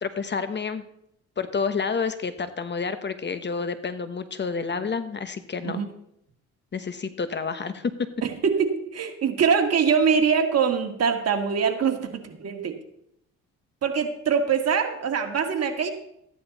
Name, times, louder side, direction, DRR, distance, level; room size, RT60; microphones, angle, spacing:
voice 1, 0.0-0.8 1.4-5.8 6.7-8.1, left 5 dB, 35° left, 11 dB, 1.1 m, -29 dB
voice 2, 8.2-12.7 13.8-15.9, right 6 dB, 55° right, 5 dB, 1.8 m, -23 dB
14.0 x 10.0 x 4.1 m, 0.77 s
cardioid pair, 90°, 30 cm